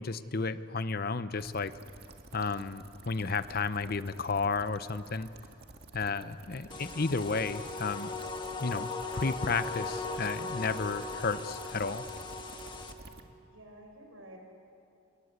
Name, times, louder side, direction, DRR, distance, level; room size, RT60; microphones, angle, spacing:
voice 1, 0.0-1.7 2.3-5.3 5.9-8.1 8.6-8.9 9.1-12.1, left 4 dB, 50° left, 13 dB, 0.8 m, -32 dB
sound 1, 1.4-13.2, right 2 dB, 50° right, 1.9 m, -51 dB
voice 2, 6.6-7.0 13.5-14.4, right 1 dB, 80° right, 2 dB, 6.4 m, -52 dB
sound 2, 6.7-12.9, left 3 dB, 25° left, 1.6 m, -38 dB
28.0 x 23.0 x 8.1 m, 2.6 s
head